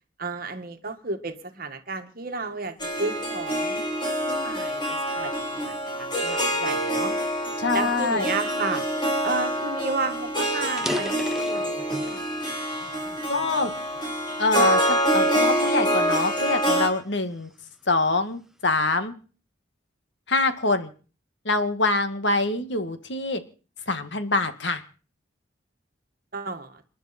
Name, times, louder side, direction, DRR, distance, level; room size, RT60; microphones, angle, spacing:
voice 1, 0.2-7.2 7.7-8.8 9.2-12.6 12.9-13.1 13.3-13.7 26.3-26.8, right 3 dB, 50° right, 6 dB, 1.9 m, -33 dB
Harp, 2.8-16.9, equal, 25° left, 4.5 m, -26 dB
voice 2, 7.6-8.3 13.3-13.7 14.4-17.5 17.9-19.1 20.3-20.9 21.5-23.4 23.9-24.8, left 3 dB, 65° left, 9 dB, 2.1 m, -25 dB
sound 1, 9.6-9.7 10.0-10.1 10.6-12.2 12.8-14.1 14.6-14.9 15.5-17.6, equal, ahead, 1.0 m, -35 dB
28.5 x 11.0 x 4.4 m, 0.39 s
head